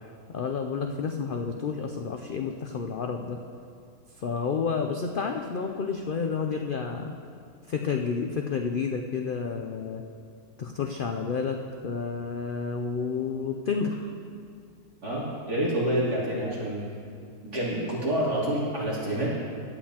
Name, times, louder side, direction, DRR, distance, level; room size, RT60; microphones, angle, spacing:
voice 1, 0.0-3.4 4.2-7.1 7.7-10.0 10.6-14.1, left 5 dB, 85° left, 4 dB, 0.4 m, -30 dB
voice 2, 15.0-16.8 17.5-19.3, right 1 dB, 80° right, -8 dB, 3.7 m, -27 dB
17.0 x 10.5 x 2.9 m, 2.3 s
omnidirectional pair, 1.6 m